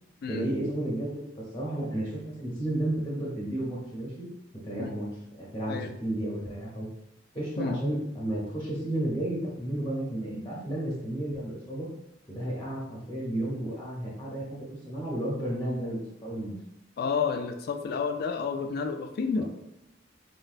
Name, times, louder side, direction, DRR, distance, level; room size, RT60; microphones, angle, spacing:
voice 1, 0.3-1.2 1.5-4.3 4.6-5.1 5.4-6.9 7.3-11.9 12.3-16.6 19.4-19.5, right 1 dB, 20° left, -5 dB, 0.7 m, -32 dB
voice 2, 17.0-19.4, left 5 dB, 55° left, 6 dB, 0.3 m, -30 dB
4.1 x 2.2 x 2.4 m, 0.84 s
head